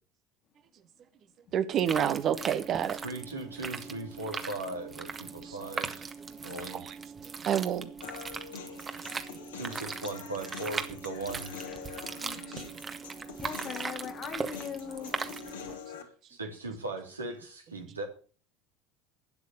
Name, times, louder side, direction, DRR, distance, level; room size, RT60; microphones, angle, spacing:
voice 1, 1.5-3.0 5.4-5.5 6.7-7.0 7.4-7.9 12.5-12.7, right 9 dB, 45° right, 1.4 m, -29 dB
sound 1, 1.7-15.8, right 5 dB, 30° right, 1.8 m, -39 dB
voice 2, 3.0-6.1 6.4-6.8 9.5-11.5 16.3-18.1, right 2 dB, 85° right, 3.2 m, -38 dB
Human voice, 8.0-16.0, left 7 dB, 75° left, 2.4 m, -45 dB
voice 3, 12.2-12.7 13.4-15.1, left 8 dB, 45° left, 2.4 m, -41 dB
12.5 x 9.7 x 7.0 m
figure-of-eight pair, 70°, 0 cm